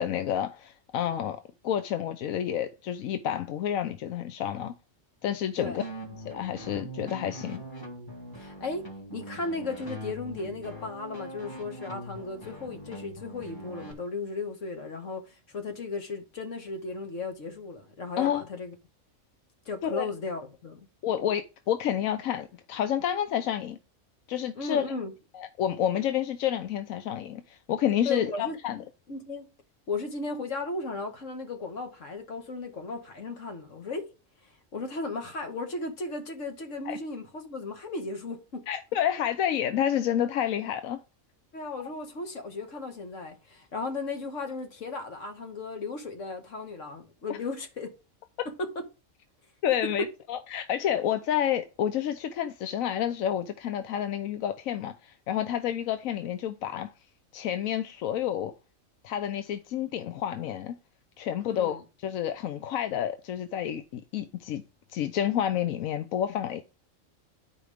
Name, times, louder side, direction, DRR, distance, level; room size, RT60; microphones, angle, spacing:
voice 1, 0.0-1.4 1.6-4.7 5.2-5.8 6.2-7.6 18.2-18.4 19.8-20.1 21.0-23.8 24.3-24.8 25.3-28.8 36.9-37.0 38.7-41.0 41.8-41.9 49.6-56.9 57.3-58.5 59.0-60.8 61.2-64.6 64.9-66.6, left 10 dB, 90° left, 1.1 m, -29 dB
sound 1, 5.8-13.9, right 1 dB, 15° left, 1.9 m, -42 dB
voice 2, 8.4-8.8 9.1-18.7 19.7-20.8 24.6-25.1 28.1-28.6 29.1-29.5 29.9-34.1 34.7-38.7 41.5-47.9 48.6-48.7 50.0-50.1 61.5-61.8, left 3 dB, 65° left, 1.9 m, -35 dB
10.0 x 4.7 x 5.0 m
omnidirectional pair, 1.4 m